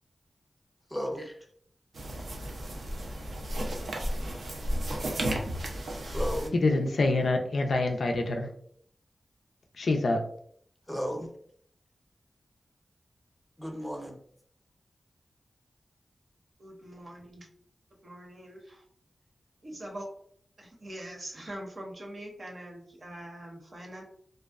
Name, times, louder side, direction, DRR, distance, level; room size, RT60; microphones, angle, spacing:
voice 1, 0.9-1.5 6.0-6.6 10.9-11.3 13.6-14.2, equal, 10° left, 1 dB, 0.6 m, -34 dB
sound 1, 1.9-6.5, right 1 dB, 85° right, 0.4 m, -33 dB
voice 2, 6.5-8.5 9.8-10.2, left 2 dB, 80° left, 3 dB, 0.3 m, -26 dB
voice 3, 16.6-17.5 18.0-18.8 19.6-20.1 20.6-24.0, right 1 dB, 50° right, 0 dB, 0.7 m, -43 dB
2.5 x 2.1 x 2.3 m, 0.62 s
wide cardioid pair, 75°, 0 cm